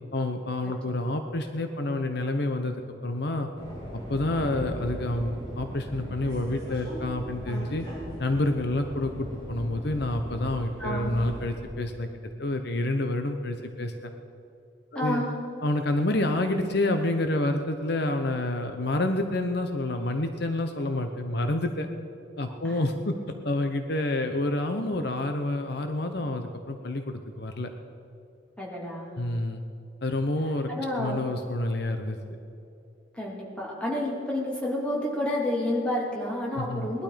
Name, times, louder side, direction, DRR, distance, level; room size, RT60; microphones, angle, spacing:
voice 1, 0.1-3.5 4.1-7.9 8.2-12.1 12.4-14.1 14.9-15.2 15.6-21.9 22.4-23.1 23.4-27.7 29.2-29.6 30.0-30.7 31.0-32.2 36.5-36.9, left 2 dB, 60° left, 6 dB, 0.9 m, -28 dB
Subway metro underground, 3.6-11.6, equal, 25° left, 4.6 m, -38 dB
voice 2, 10.8-11.1 14.9-15.3 22.6-22.8 28.6-29.1 30.7-31.2 33.1-37.0, left 1 dB, 5° left, -4 dB, 3.0 m, -30 dB
19.5 x 12.0 x 5.1 m, 2.7 s
head